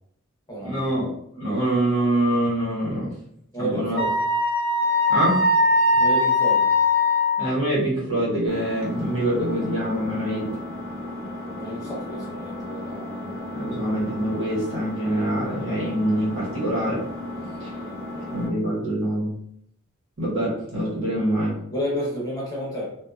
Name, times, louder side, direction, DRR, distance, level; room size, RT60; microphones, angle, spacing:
voice 1, 0.6-3.1 3.6-4.0 5.1-5.4 5.9-6.0 7.4-10.5 13.5-17.0 17.6-17.7 18.3-19.3 20.2-21.6, right 1 dB, 70° right, -6 dB, 1.1 m, -25 dB
voice 2, 3.5-4.2 6.0-6.7 11.5-13.7 21.7-22.9, equal, 20° left, -5 dB, 0.8 m, -31 dB
Wind instrument woodwind instrument, 4.0-7.4, left 2 dB, 50° left, 0.5 m, -20 dB
Engine, 8.5-18.5, left 1 dB, 45° right, 1.1 m, -35 dB
2.6 x 2.4 x 2.3 m, 0.72 s
head